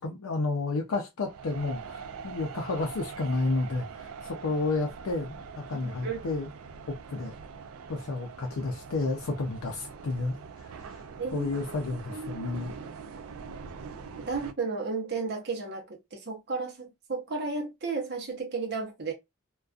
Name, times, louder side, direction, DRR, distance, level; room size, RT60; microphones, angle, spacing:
voice 1, 0.0-6.5 6.9-7.3 7.9-11.0 11.3-12.7, left 3 dB, 90° left, 0.5 m, -31 dB
sound 1, 1.2-14.5, right 5 dB, 85° right, 0.4 m, -43 dB
voice 2, 5.8-6.2 11.2-11.5 12.1-12.5 14.2-19.1, right 4 dB, 50° right, 0.7 m, -33 dB
2.3 x 2.2 x 2.3 m
head